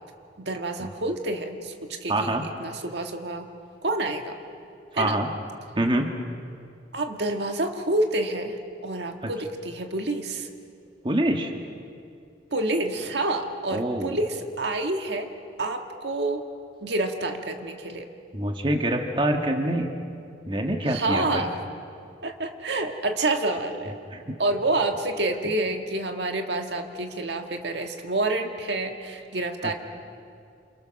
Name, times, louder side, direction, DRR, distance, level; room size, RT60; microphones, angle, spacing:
voice 1, 0.4-3.5 3.8-4.4 4.9-5.2 6.9-10.5 12.5-15.3 15.6-16.4 16.8-18.1 20.9-21.6 22.2-24.0 24.4-29.7, right 2 dB, 65° right, 4 dB, 1.8 m, -28 dB
voice 2, 2.1-2.4 4.9-5.3 5.7-6.1 9.2-9.3 11.0-11.5 13.7-14.2 18.3-19.9 20.5-21.4 24.1-24.4 29.6-29.7, right 1 dB, 25° right, 3 dB, 1.7 m, -25 dB
28.5 x 28.5 x 6.5 m, 2.4 s
head